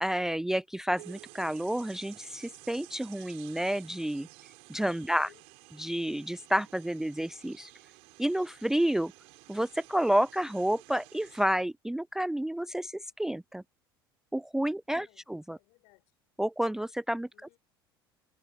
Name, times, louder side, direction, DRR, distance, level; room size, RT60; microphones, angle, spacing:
voice 1, 0.0-4.3 4.7-5.3 5.8-7.7 8.2-9.1 9.5-13.6 14.3-15.6 16.4-17.3, right 1 dB, 5° right, 0.5 m, -30 dB
sound 1, 1.0-11.5, right 28 dB, 55° right, 5.1 m, -53 dB
voice 2, 5.1-5.4 14.9-15.2 15.5-16.0 17.3-17.6, left 26 dB, 55° left, 7.3 m, -62 dB
figure-of-eight pair, 65°, 12 cm